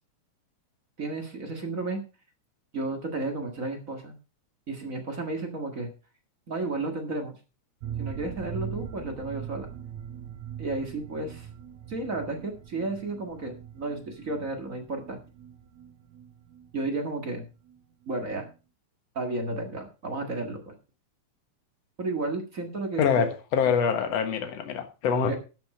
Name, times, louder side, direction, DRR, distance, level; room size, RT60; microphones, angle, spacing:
voice 1, 1.0-2.0 2.7-4.1 4.7-5.9 6.5-7.4 8.0-9.7 10.6-11.5 11.9-15.2 16.7-17.5 18.1-18.5 19.1-20.7 22.0-23.3 23.7-23.8 25.3-25.4, right 2 dB, 30° right, 3 dB, 1.8 m, -32 dB
sound 1, 7.8-17.4 17.7-17.8 18.1-18.2, right 9 dB, 75° right, 2.3 m, -41 dB
voice 2, 23.0-25.4, left 6 dB, 60° left, 7 dB, 2.5 m, -25 dB
12.0 x 7.4 x 5.0 m, 0.32 s
omnidirectional pair, 3.4 m